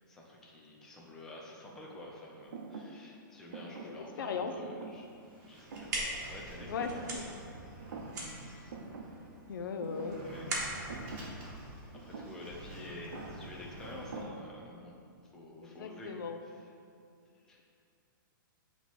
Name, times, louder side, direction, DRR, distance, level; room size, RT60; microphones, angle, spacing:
voice 1, 0.1-5.1 5.5-7.4 8.0-8.7 10.2-10.5 12.0-14.9 15.3-16.2 16.5-16.6 17.3-17.6, left 1 dB, 5° left, -3 dB, 0.4 m, -49 dB
Thump thud, 2.5-7.5 7.8-8.4 8.7-14.8, right 4 dB, 85° right, 0.7 m, -48 dB
voice 2, 3.8-4.5 6.7-7.2 8.4-8.6 9.5-10.2 15.6-16.4, left 5 dB, 75° left, 6 dB, 0.6 m, -38 dB
Sliding door, 4.8-14.2, right 1 dB, 35° right, 1.2 m, -49 dB
sound 1, 5.5-12.3, right 2 dB, 55° right, 1.3 m, -41 dB
8.0 x 3.0 x 4.1 m, 2.4 s
hypercardioid pair, 170°, 11 cm